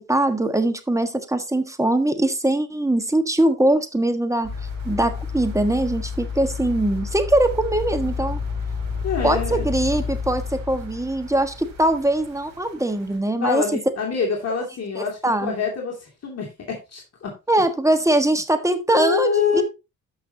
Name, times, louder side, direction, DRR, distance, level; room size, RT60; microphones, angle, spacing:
voice 1, 0.0-4.5 4.8-8.4 9.2-13.8 14.9-15.5 17.5-19.6, right 1 dB, 10° right, 9 dB, 1.5 m, -22 dB
sound 1, 4.4-12.7 13.1-13.2, left 5 dB, 70° right, 3.7 m, -30 dB
voice 2, 9.0-9.6 13.4-17.3 18.9-19.6, left 6 dB, 45° left, -1 dB, 2.4 m, -26 dB
13.5 x 5.7 x 2.8 m, 0.26 s
cardioid pair, 70°, 34 cm